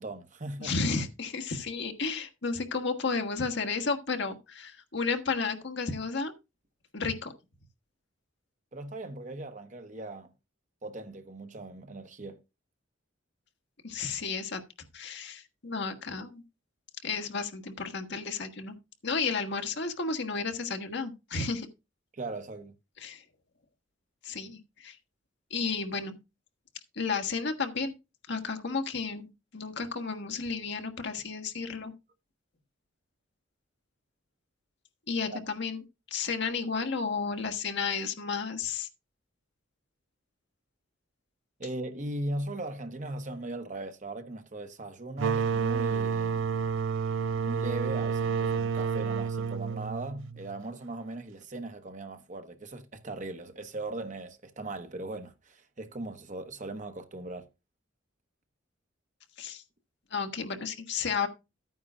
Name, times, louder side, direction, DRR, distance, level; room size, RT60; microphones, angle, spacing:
voice 1, 0.0-0.9 8.7-10.3 10.8-12.4 22.1-22.7 35.3-35.4 41.6-46.4 47.4-57.5, right 2 dB, 40° right, 1.2 m, -39 dB
voice 2, 0.6-6.3 6.9-7.3 13.8-14.6 14.9-16.4 17.0-18.8 19.0-21.7 23.0-23.2 24.2-24.9 25.5-26.2 26.9-27.9 28.3-29.3 29.5-31.9 35.1-35.8 36.1-38.9 59.4-59.6 60.1-61.3, left 4 dB, 60° left, 1.5 m, -32 dB
sound 1, 45.2-50.6, right 6 dB, 65° right, 0.4 m, -30 dB
12.5 x 9.4 x 2.4 m
head